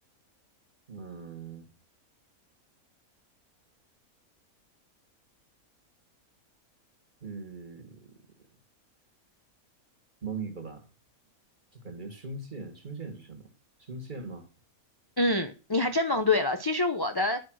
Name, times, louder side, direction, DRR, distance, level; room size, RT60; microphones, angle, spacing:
voice 1, 0.9-1.7 7.2-8.1 10.2-10.9 11.7-13.5 13.8-14.5, right 4 dB, 35° right, 1.9 m, -40 dB
voice 2, 15.2-17.4, left 2 dB, 25° left, 0.5 m, -26 dB
10.5 x 5.4 x 6.3 m
omnidirectional pair, 1.5 m